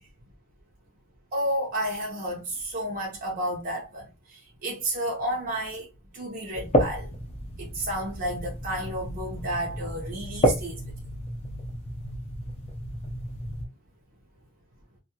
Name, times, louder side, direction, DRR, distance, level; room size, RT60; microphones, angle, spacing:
voice 1, 1.3-5.9 6.1-7.1 7.6-10.8, right 1 dB, 40° right, 0.6 m, -31 dB
sound 1, 6.5-13.7, equal, 30° left, 0.6 m, -30 dB
2.5 x 2.3 x 2.9 m
head